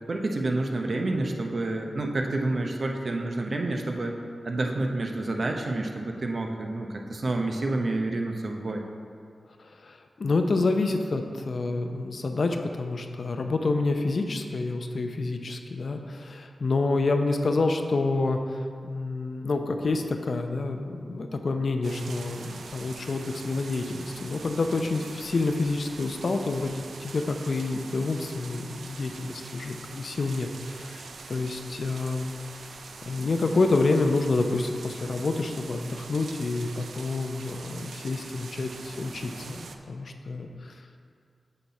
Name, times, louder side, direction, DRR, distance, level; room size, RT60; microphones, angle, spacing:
voice 1, 0.1-4.2 4.4-8.8, right 2 dB, 60° right, 2 dB, 0.9 m, -29 dB
voice 2, 9.6-32.3 33.0-39.6 39.9-40.7, left 3 dB, 65° left, 5 dB, 0.6 m, -28 dB
sound 1, 21.8-39.8, right 4 dB, 85° right, 0.5 m, -44 dB
8.1 x 5.8 x 4.2 m, 2.3 s
cardioid pair, 55°, 0 cm